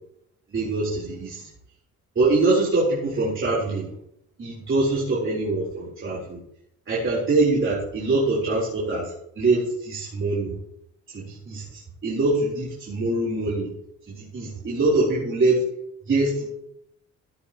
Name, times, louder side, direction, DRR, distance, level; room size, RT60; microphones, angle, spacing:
voice 1, 0.5-1.5 2.2-3.9 4.4-6.4 6.9-10.6 11.1-13.7 14.1-15.6 16.1-16.5, right 2 dB, 40° right, -6 dB, 3.9 m, -24 dB
14.0 x 10.0 x 3.0 m, 0.76 s
cardioid pair, 90°, 30 cm